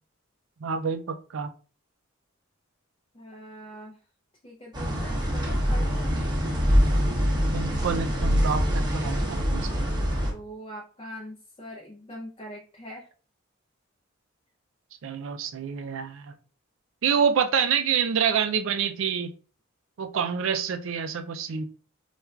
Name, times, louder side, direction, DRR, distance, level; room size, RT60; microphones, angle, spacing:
voice 1, 0.6-1.5 7.4-10.1 15.0-16.3 17.0-19.3 20.0-21.7, right 6 dB, 70° right, 9 dB, 0.4 m, -27 dB
voice 2, 3.1-4.0 4.4-6.2 10.3-13.1, equal, 25° left, -2 dB, 0.5 m, -42 dB
sound 1, 4.7-10.3, equal, 20° right, 0.8 m, -24 dB
4.3 x 2.4 x 2.3 m, 0.39 s
head